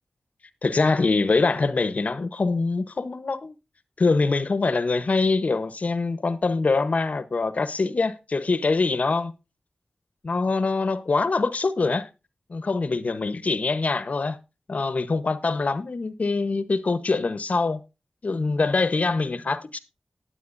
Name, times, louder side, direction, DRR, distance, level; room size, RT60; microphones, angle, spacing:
voice 1, 0.6-3.5 4.0-9.3 10.2-12.1 12.5-14.4 14.7-17.8 18.2-19.8, left 3 dB, 65° left, 0.9 m, -24 dB
19.5 x 7.8 x 2.6 m
wide cardioid pair, 55°, 3 cm